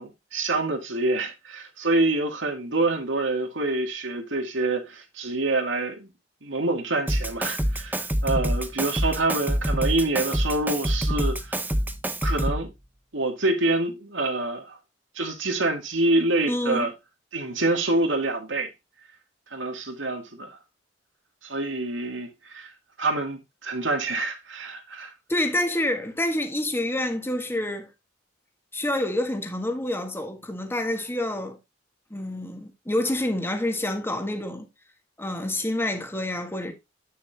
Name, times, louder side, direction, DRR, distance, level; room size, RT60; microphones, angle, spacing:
voice 1, 0.0-6.1 6.4-11.6 12.2-12.7 13.1-14.8 15.2-16.9 17.3-18.7 19.5-20.6 21.4-22.7 23.0-25.1, right 2 dB, 75° right, 2.1 m, -26 dB
Drum kit, 7.1-12.7, equal, 10° right, 0.8 m, -26 dB
voice 2, 16.5-16.9 25.3-27.9 28.7-31.6 32.1-34.7 35.2-36.7, left 1 dB, 10° left, 1.5 m, -27 dB
8.9 x 6.9 x 2.8 m
head